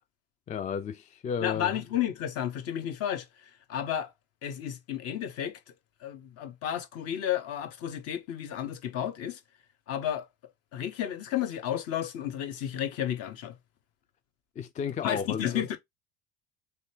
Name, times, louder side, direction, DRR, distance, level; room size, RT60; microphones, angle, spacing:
voice 1, 0.5-1.7 14.6-15.7, left 7 dB, 25° left, 0.4 m, -33 dB
voice 2, 1.4-3.3 3.7-4.1 4.4-5.7 6.0-9.4 9.9-10.3 10.7-13.6 15.0-15.8, left 10 dB, 55° left, 1.1 m, -32 dB
3.4 x 3.1 x 4.3 m
hypercardioid pair, 80°, 29 cm